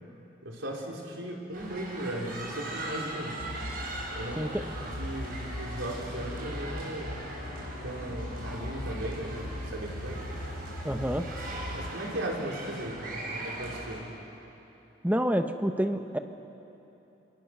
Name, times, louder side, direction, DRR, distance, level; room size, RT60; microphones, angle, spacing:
voice 1, 0.4-3.4 4.1-7.2 7.8-10.2 11.6-14.1, right 1 dB, 80° right, -1 dB, 4.4 m, -37 dB
sound 1, 1.5-14.0, right 1 dB, 45° right, 4.6 m, -40 dB
sound 2, 3.4-11.9, left 1 dB, 55° left, 1.5 m, -40 dB
voice 2, 10.8-11.3 15.0-16.2, equal, 10° right, 7 dB, 0.9 m, -28 dB
28.5 x 27.5 x 6.2 m, 3.0 s
head